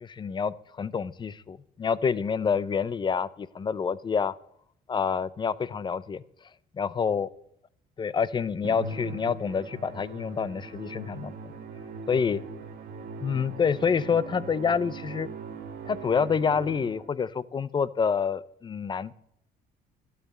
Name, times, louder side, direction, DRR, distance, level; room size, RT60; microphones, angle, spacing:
voice 1, 0.0-4.3 4.9-6.2 6.8-7.3 8.0-11.5 12.1-12.4 13.2-15.3 15.8-19.1, left 6 dB, 25° left, 18 dB, 0.6 m, -27 dB
Musical instrument, 8.6-17.2, right 4 dB, 70° right, 1.9 m, -40 dB
12.0 x 8.3 x 7.3 m, 0.71 s
cardioid pair, 110°, 17 cm